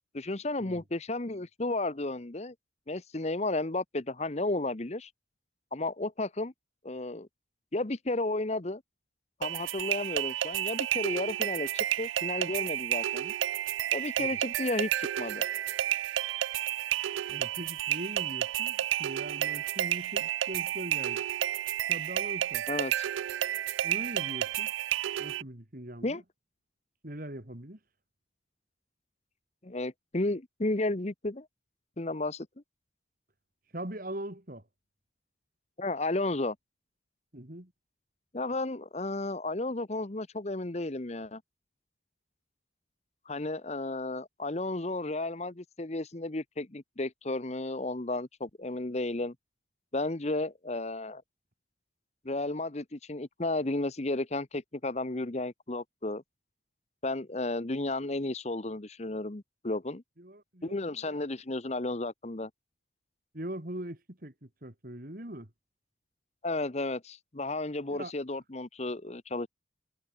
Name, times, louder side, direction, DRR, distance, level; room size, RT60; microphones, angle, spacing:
voice 1, 0.1-2.5 2.9-5.1 5.7-6.5 6.8-7.3 7.7-8.8 9.4-13.3 13.9-15.4 22.7-23.1 26.0-26.2 29.6-31.5 32.0-32.5 35.8-36.6 38.3-41.4 43.3-49.3 49.9-51.2 52.2-56.2 57.0-60.0 60.6-62.5 66.4-69.5, left 2 dB, 35° left, 1.0 m, -33 dB
sound 1, 9.4-25.4, right 12 dB, 85° right, 0.3 m, -31 dB
voice 2, 17.3-21.2 21.9-22.7 23.8-24.7 25.2-26.2 27.0-27.8 33.7-34.6 37.3-37.7 60.2-61.1 63.3-65.5 67.9-68.1, right 1 dB, 45° right, 2.8 m, -41 dB
head